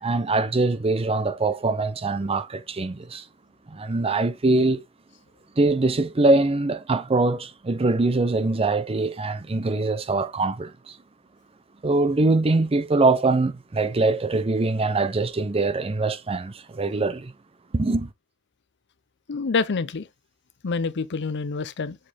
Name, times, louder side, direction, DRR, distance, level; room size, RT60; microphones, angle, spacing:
voice 1, 0.0-3.2 3.7-4.8 5.6-10.9 11.8-17.3 17.7-18.1, right 2 dB, 25° right, 0.5 m, -23 dB
voice 2, 19.3-20.1 20.6-22.0, left 4 dB, 55° left, 0.6 m, -27 dB
7.5 x 4.3 x 3.4 m
head